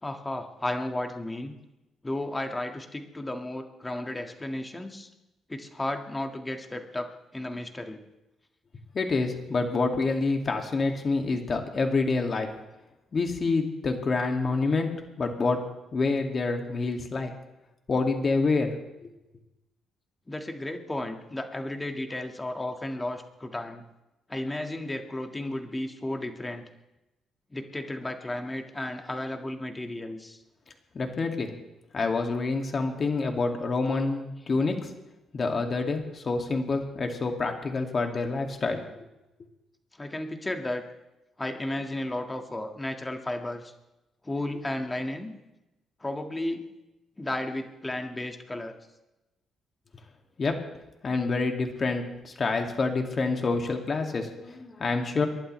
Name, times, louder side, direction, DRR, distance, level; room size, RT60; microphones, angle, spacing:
voice 1, 0.0-1.5 2.0-5.1 5.5-7.1 7.3-8.0 20.3-23.8 24.3-26.6 27.5-30.4 40.0-40.8 41.4-43.7 44.2-45.3 46.0-46.7 47.2-48.7, left 1 dB, 15° left, 5 dB, 1.8 m, -33 dB
voice 2, 8.9-12.5 13.1-14.9 15.2-15.6 15.9-17.3 17.9-18.7 19.0-19.1 30.9-31.5 31.9-34.7 35.3-38.8 50.4-50.5 51.0-55.3, left 3 dB, 40° left, 4 dB, 2.3 m, -27 dB
28.5 x 11.5 x 3.3 m, 0.97 s
cardioid pair, 90°, 0 cm